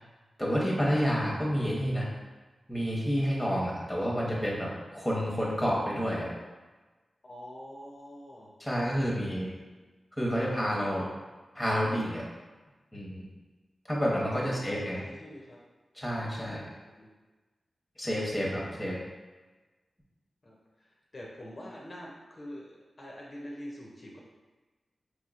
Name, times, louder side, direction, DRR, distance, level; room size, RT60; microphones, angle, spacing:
voice 1, 0.4-2.1 2.7-6.3 8.6-9.5 10.2-11.1 11.5-12.2 12.9-13.3 13.9-15.0 15.9-16.6 18.0-19.0, equal, 5° left, -4 dB, 0.8 m, -29 dB
voice 2, 7.2-8.5 9.0-9.7 14.5-15.6 16.8-17.1 20.4-24.2, equal, 40° left, -3 dB, 0.6 m, -46 dB
4.5 x 2.9 x 2.4 m, 1.3 s
wide cardioid pair, 100°, 0 cm